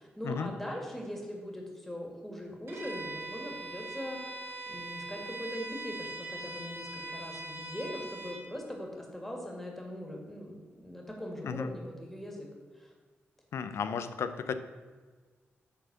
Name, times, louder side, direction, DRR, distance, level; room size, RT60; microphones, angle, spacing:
voice 1, 0.0-12.5 12.8-12.9, left 1 dB, 5° left, -1 dB, 1.9 m, -41 dB
Bowed string instrument, 2.7-8.5, right 2 dB, 75° right, 1.7 m, -41 dB
voice 2, 13.5-14.5, left 6 dB, 80° left, 10 dB, 0.5 m, -34 dB
8.2 x 4.2 x 6.0 m, 1.4 s
cardioid pair, 90°, 4 cm